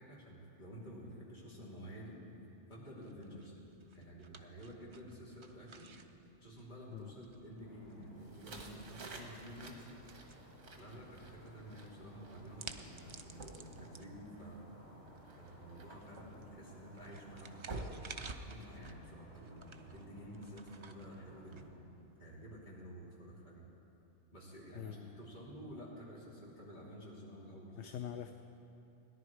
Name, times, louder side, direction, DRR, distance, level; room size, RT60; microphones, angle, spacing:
voice 1, 0.0-2.2 2.7-3.5 3.9-5.9 6.4-9.9 10.8-14.7 15.4-17.7 18.4-21.9 22.2-23.7 24.3-27.9, equal, 40° left, -6 dB, 2.9 m, -51 dB
sound 1, 3.0-22.3, right 4 dB, 55° right, 0.3 m, -55 dB
sound 2, 7.5-21.7, equal, 10° right, 3.4 m, -58 dB
sound 3, 8.2-18.9, right 2 dB, 90° right, 1.6 m, -52 dB
voice 2, 24.7-25.2 27.8-28.3, left 10 dB, 75° left, 7 dB, 0.9 m, -44 dB
17.5 x 10.5 x 4.6 m, 2.8 s
omnidirectional pair, 1.2 m